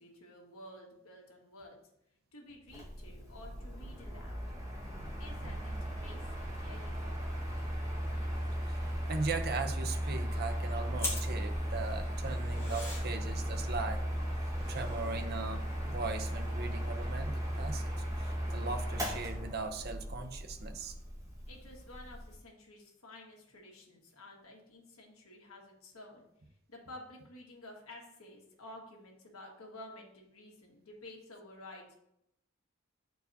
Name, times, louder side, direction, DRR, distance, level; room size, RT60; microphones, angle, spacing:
voice 1, 0.0-1.8 2.3-4.4 5.2-7.6 21.5-26.3 26.7-31.9, left 1 dB, 85° left, 0 dB, 1.5 m, -52 dB
Mechanical fan, 2.7-22.3, equal, 15° right, 1.5 m, -36 dB
voice 2, 8.7-14.0 14.7-17.3 17.6-20.9, right 4 dB, 50° right, 6 dB, 0.6 m, -39 dB
sound 1, 10.9-16.7, left 1 dB, 15° left, 1.5 m, -44 dB
9.4 x 4.6 x 2.7 m, 0.79 s
head